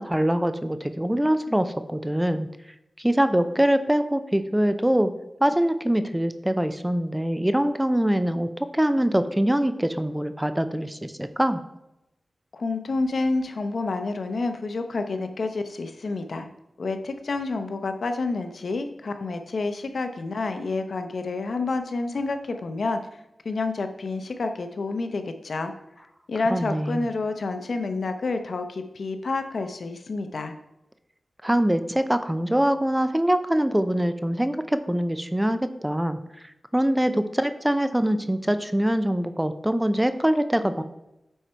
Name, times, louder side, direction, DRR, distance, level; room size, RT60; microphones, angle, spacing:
voice 1, 0.0-2.5 3.0-5.1 5.4-11.6 26.5-27.1 31.4-40.8, right 1 dB, 10° right, 10 dB, 0.5 m, -24 dB
voice 2, 12.5-16.5 16.8-25.7 26.3-30.5, left 3 dB, 75° left, 7 dB, 0.8 m, -29 dB
9.1 x 4.4 x 4.5 m, 0.90 s
wide cardioid pair, 85°, 0 cm